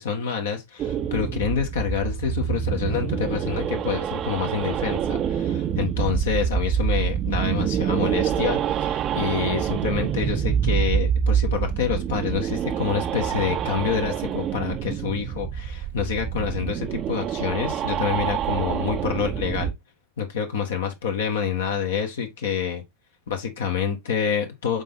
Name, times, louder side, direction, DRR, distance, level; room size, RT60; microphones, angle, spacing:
voice 1, 0.0-19.7 20.2-22.8 23.3-24.8, left 7 dB, 60° left, 1.6 m, -27 dB
sound 1, 0.8-19.7, right 8 dB, 30° right, 0.6 m, -26 dB
7.2 x 4.2 x 4.0 m
figure-of-eight pair, 90°, 0 cm